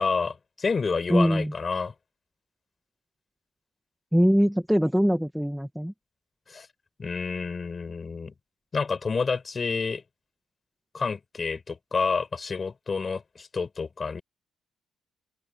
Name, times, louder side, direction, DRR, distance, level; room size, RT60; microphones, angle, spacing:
voice 1, 0.0-1.9 6.5-6.7 7.0-8.3 8.7-10.0 10.9-14.2, left 4 dB, 35° left, 6.6 m, -29 dB
voice 2, 1.1-1.5 4.1-5.9, equal, ahead, 2.2 m, -22 dB
open air
cardioid pair, 90°, 0 cm